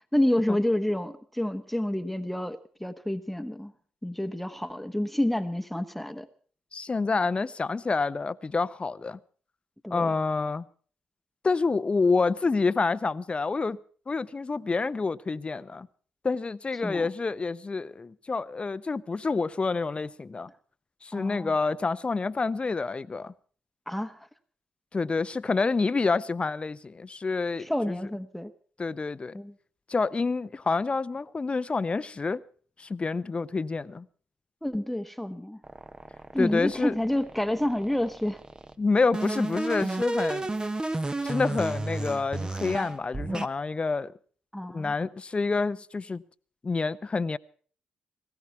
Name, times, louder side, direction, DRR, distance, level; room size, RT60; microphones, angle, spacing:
voice 1, 0.1-3.7 4.0-6.3 9.8-10.1 16.8-17.1 21.1-21.5 23.9-24.3 27.6-28.5 29.3-29.5 34.6-35.6 36.3-38.4 44.5-44.9, left 1 dB, 5° left, 1.1 m, -29 dB
voice 2, 6.7-9.2 9.9-10.7 11.4-13.8 14.1-15.9 16.2-20.5 21.0-23.3 24.9-28.0 28.8-29.4 29.9-32.4 32.8-34.1 36.4-36.9 38.8-40.5 41.2-44.1 44.7-46.2 46.6-47.4, left 4 dB, 30° left, 0.7 m, -28 dB
sound 1, 35.6-38.7 39.1-43.5, right 2 dB, 20° right, 1.0 m, -32 dB
18.5 x 16.0 x 4.6 m
hypercardioid pair, 45°, 4 cm